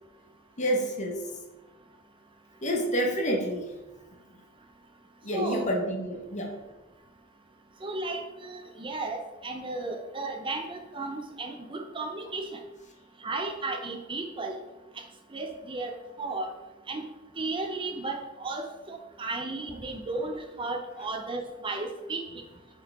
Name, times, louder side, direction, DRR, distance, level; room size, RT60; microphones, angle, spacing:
voice 1, 0.6-1.3 2.6-3.7 5.2-6.6, equal, 35° left, 2 dB, 1.2 m, -28 dB
voice 2, 5.3-5.7 7.8-12.6 13.2-14.5 15.3-16.5 16.9-17.0 17.4-22.2, right 3 dB, 25° right, 4 dB, 0.7 m, -34 dB
8.5 x 4.6 x 3.6 m, 1.1 s
head